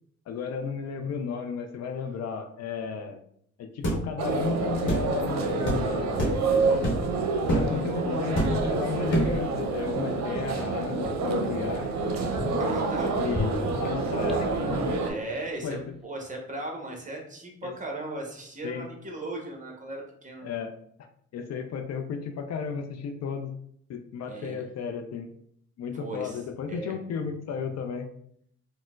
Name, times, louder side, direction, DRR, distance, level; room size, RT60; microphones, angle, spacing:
voice 1, 0.3-3.2 3.6-6.2 7.5-11.9 13.2-14.8 15.6-15.9 17.6-17.7 18.6-18.9 20.4-23.5 23.9-25.3 25.8-28.1, left 6 dB, 60° left, 5 dB, 0.5 m, -34 dB
sound 1, 3.8-4.0 4.9-5.1 5.7-5.8 6.2-6.4 6.8-7.1 7.5-7.7 8.4-8.7 9.1-9.4, right 1 dB, 40° left, 1.1 m, -26 dB
sound 2, 4.2-15.1, right 3 dB, 65° right, 0.6 m, -28 dB
sound 3, 11.0-11.1 11.6-11.7 12.1-12.9 13.3-15.6 15.8-15.9, left 2 dB, ahead, 0.4 m, -34 dB
voice 2, 12.6-13.2 15.0-20.5 24.3-24.6 25.9-26.4 26.7-26.9, right 2 dB, 25° right, 1 dB, 0.9 m, -37 dB
4.2 x 2.1 x 2.3 m, 0.66 s
cardioid pair, 90°, 30 cm